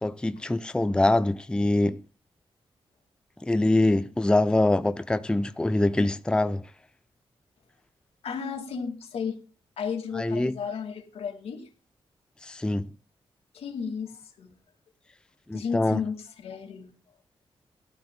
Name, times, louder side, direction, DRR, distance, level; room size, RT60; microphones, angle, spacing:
voice 1, 0.0-2.0 3.4-6.6 10.2-10.5 12.4-12.9 15.5-16.0, left 2 dB, 10° left, 0.5 m, -24 dB
voice 2, 8.2-9.4 9.8-11.7 13.5-14.5 15.5-16.9, left 6 dB, 80° left, 2.1 m, -33 dB
17.0 x 12.0 x 2.2 m
cardioid pair, 80°, 10 cm